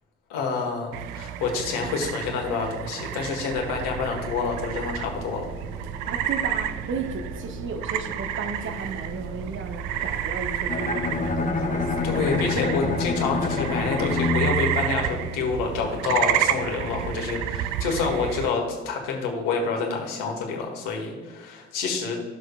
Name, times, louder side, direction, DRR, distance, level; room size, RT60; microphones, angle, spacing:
voice 1, 0.3-5.5 12.0-22.2, left 4 dB, 60° left, 2 dB, 1.6 m, -28 dB
sound 1, 0.9-18.5, right 11 dB, 60° right, 0.5 m, -31 dB
sound 2, 3.5-14.3, right 1 dB, 90° left, 0.8 m, -40 dB
voice 2, 6.1-12.4, right 4 dB, 35° right, 6 dB, 0.9 m, -34 dB
Bowed string instrument, 10.7-15.7, left 3 dB, 20° left, 0.7 m, -27 dB
13.5 x 6.4 x 2.4 m, 1.5 s
figure-of-eight pair, 50°, 36 cm